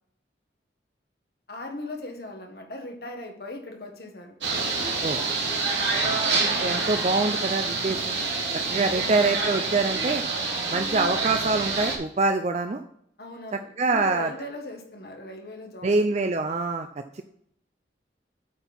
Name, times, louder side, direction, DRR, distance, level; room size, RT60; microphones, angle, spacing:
voice 1, 1.5-4.4 8.9-9.3 13.2-16.3, left 1 dB, 55° left, 2 dB, 1.6 m, -39 dB
sound 1, 4.4-12.0, right 4 dB, 85° right, 2.2 m, -27 dB
voice 2, 6.0-8.2 8.7-10.2 10.7-12.8 13.8-14.3 15.8-16.9 17.1-17.2, right 3 dB, 35° right, 7 dB, 0.4 m, -25 dB
8.4 x 4.5 x 5.3 m, 0.70 s
head